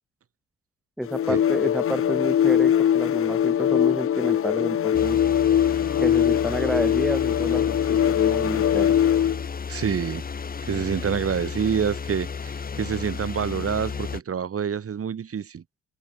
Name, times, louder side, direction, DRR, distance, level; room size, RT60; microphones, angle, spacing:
voice 1, 1.0-5.2 6.0-8.9, equal, ahead, 0.9 m, -30 dB
sound 1, 1.1-9.5, left 10 dB, 45° left, 0.8 m, -22 dB
sound 2, 4.9-14.2, left 5 dB, 30° left, 1.2 m, -33 dB
voice 2, 9.7-10.2 10.6-15.6, right 7 dB, 50° right, 4.1 m, -27 dB
cardioid pair, 90°, 30 cm